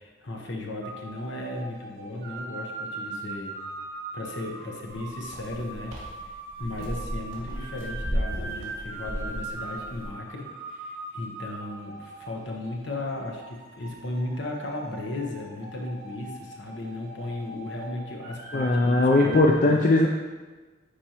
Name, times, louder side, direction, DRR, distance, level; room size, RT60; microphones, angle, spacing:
voice 1, 0.0-3.5 4.1-5.9 6.2-19.8, left 2 dB, 60° left, 0 dB, 1.1 m, -36 dB
sound 1, 0.8-19.5, right 3 dB, 45° right, 1.4 m, -41 dB
sound 2, 4.8-10.1, equal, 80° right, 2.0 m, -34 dB
voice 2, 18.5-20.1, left 2 dB, 40° left, 0 dB, 0.4 m, -19 dB
9.9 x 4.4 x 3.0 m, 1.3 s
head